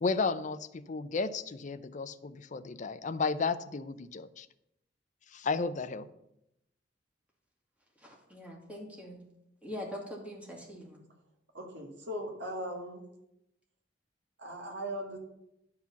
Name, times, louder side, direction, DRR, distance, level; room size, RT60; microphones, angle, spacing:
voice 1, 0.0-4.5 5.3-6.1, left 4 dB, 40° left, 12 dB, 0.5 m, -33 dB
voice 2, 8.0-9.2 9.6-11.0, left 1 dB, 5° right, -2 dB, 2.3 m, -43 dB
voice 3, 11.5-13.0 14.4-15.2, equal, 65° right, 1 dB, 1.9 m, -39 dB
10.5 x 4.8 x 7.1 m, 0.84 s
head